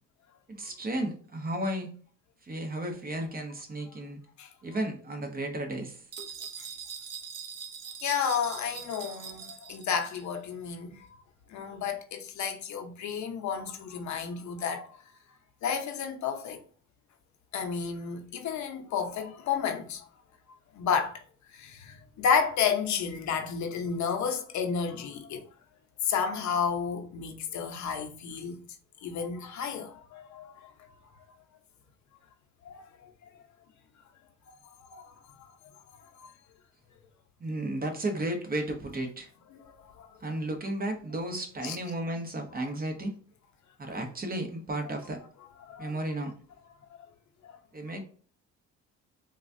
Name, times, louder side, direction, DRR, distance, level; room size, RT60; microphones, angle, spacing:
voice 1, 0.5-1.9 2.4-4.2 4.6-6.3 37.4-39.3 40.2-43.2 43.8-45.2 45.8-46.3 47.7-48.0, right 1 dB, 30° right, 0.9 m, -33 dB
sound 1, 6.1-10.3, right 7 dB, 55° right, 0.7 m, -42 dB
voice 2, 8.0-11.1 11.5-15.0 15.6-16.6 17.5-20.0 20.7-21.2 21.5-25.5 26.0-28.6 29.0-30.7 32.6-33.1 34.9-35.5 36.2-36.3 39.8-40.2 41.6-41.8 45.6-45.9 47.4-47.6, left 6 dB, 70° left, 0.7 m, -31 dB
4.0 x 2.3 x 2.6 m
cardioid pair, 90°, 30 cm